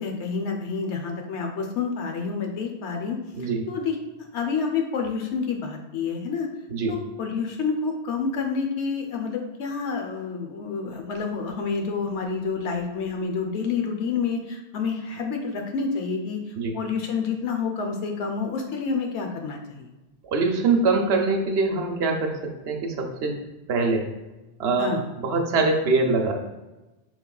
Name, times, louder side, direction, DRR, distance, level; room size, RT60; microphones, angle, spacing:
voice 1, 0.0-4.0 4.3-6.5 6.9-19.9 24.8-25.0, left 5 dB, 85° left, 3 dB, 1.0 m, -28 dB
voice 2, 3.4-3.7 6.7-6.9 16.6-16.7 20.2-23.4 23.7-24.1 24.6-26.3, right 3 dB, 70° right, 2 dB, 0.9 m, -23 dB
5.2 x 3.2 x 2.3 m, 1.1 s
omnidirectional pair, 1.1 m